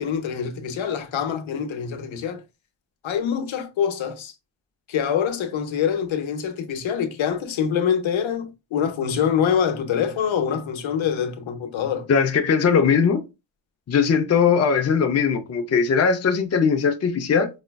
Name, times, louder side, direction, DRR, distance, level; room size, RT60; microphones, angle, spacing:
voice 1, 0.0-2.4 3.0-4.3 4.9-12.1, left 8 dB, 80° left, 0.8 m, -25 dB
voice 2, 12.1-13.2 13.9-17.5, left 6 dB, 35° left, 0.5 m, -19 dB
5.1 x 2.2 x 2.2 m
wide cardioid pair, 125°, 46 cm